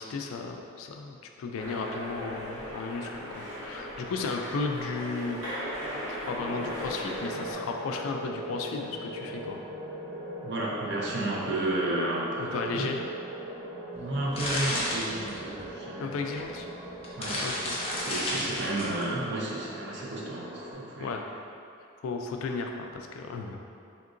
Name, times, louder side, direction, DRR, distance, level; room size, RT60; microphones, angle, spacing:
voice 1, 0.0-5.4 6.1-9.6 12.4-13.0 16.0-16.7 17.4-17.8 21.0-21.3 22.0-23.6, left 4 dB, 70° left, 3 dB, 0.3 m, -34 dB
sound 1, 1.6-7.5, equal, 80° right, 0.8 m, -38 dB
sound 2, 6.4-20.7, right 1 dB, ahead, 1.0 m, -40 dB
voice 2, 10.4-13.0 13.9-16.1 17.2-17.4 17.9-21.1, right 1 dB, 55° right, -4 dB, 0.6 m, -32 dB
sound 3, 14.0-15.7 16.5-16.6 16.9-19.0, left 1 dB, 30° left, 0.6 m, -31 dB
3.6 x 2.8 x 2.5 m, 2.5 s
head